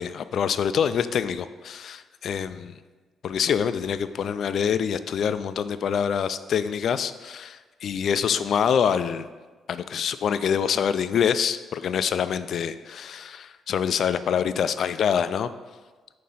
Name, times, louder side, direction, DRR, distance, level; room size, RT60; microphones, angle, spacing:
voice 1, 0.0-2.8 3.2-9.3 9.7-15.5, left 7 dB, 60° left, 13 dB, 0.3 m, -25 dB
7.4 x 2.9 x 5.5 m, 1.3 s
cardioid pair, 90°, 0 cm